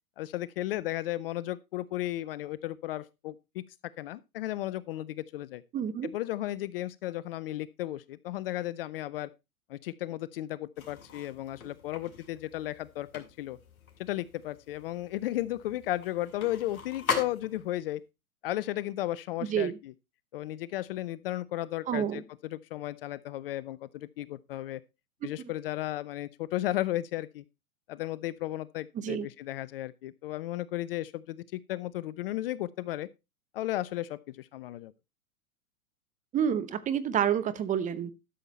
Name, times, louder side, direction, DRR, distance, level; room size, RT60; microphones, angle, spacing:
voice 1, 0.2-3.6 4.0-5.6 6.0-9.3 9.7-13.6 14.0-18.0 18.4-19.9 20.3-22.2 22.5-24.8 25.2-27.4 27.9-33.1 33.5-34.9, left 15 dB, 40° left, 0.5 m, -34 dB
voice 2, 5.7-6.1 19.4-19.8 21.9-22.2 28.9-29.3 36.3-38.1, right 9 dB, 20° right, 0.8 m, -29 dB
sound 1, 10.8-17.8, left 5 dB, 75° left, 2.7 m, -40 dB
12.5 x 7.1 x 4.0 m
hypercardioid pair, 110°, 43 cm